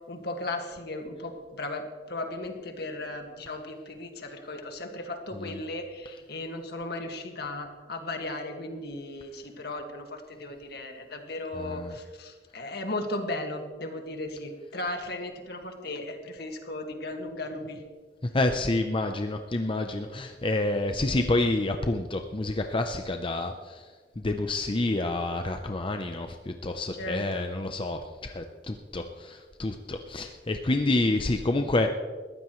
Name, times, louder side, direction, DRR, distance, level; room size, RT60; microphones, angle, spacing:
voice 1, 0.1-17.8 27.0-27.5, left 2 dB, 65° left, 4 dB, 2.0 m, -36 dB
voice 2, 11.5-11.9 18.3-23.9 24.2-31.9, left 2 dB, 30° left, 5 dB, 0.7 m, -28 dB
21.0 x 15.5 x 3.2 m, 1.5 s
head